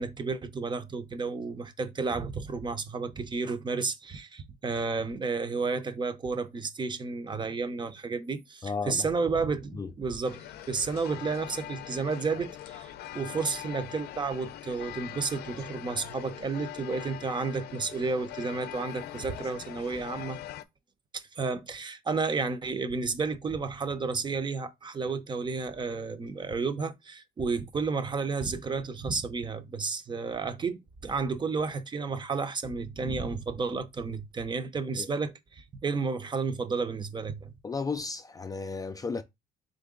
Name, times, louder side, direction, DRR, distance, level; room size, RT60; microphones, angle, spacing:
voice 1, 0.0-20.4 21.1-37.5, right 4 dB, 25° right, 0.7 m, -32 dB
voice 2, 8.6-9.1 9.7-9.9 35.0-35.1 37.6-39.2, left 4 dB, 20° left, 0.4 m, -34 dB
sound 1, 10.2-20.6, left 13 dB, 70° left, 0.5 m, -42 dB
3.8 x 3.3 x 3.7 m
cardioid pair, 110°, 17 cm